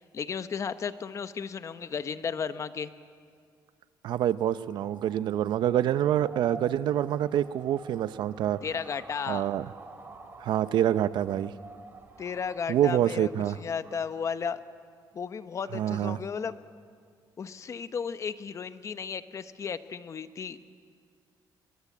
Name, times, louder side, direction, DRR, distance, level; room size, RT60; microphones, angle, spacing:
voice 1, 0.1-2.9 8.6-9.5 12.2-14.6 15.1-16.5 17.4-20.6, left 6 dB, 40° left, 12 dB, 0.9 m, -34 dB
voice 2, 4.0-8.6 9.3-9.7 10.4-11.5 12.7-13.6 15.7-16.2, right 11 dB, 70° right, 15 dB, 0.6 m, -26 dB
sound 1, 4.4-14.1, right 3 dB, 25° right, 2.7 m, -48 dB
22.0 x 22.0 x 8.5 m, 2.1 s
cardioid pair, 130°, 8 cm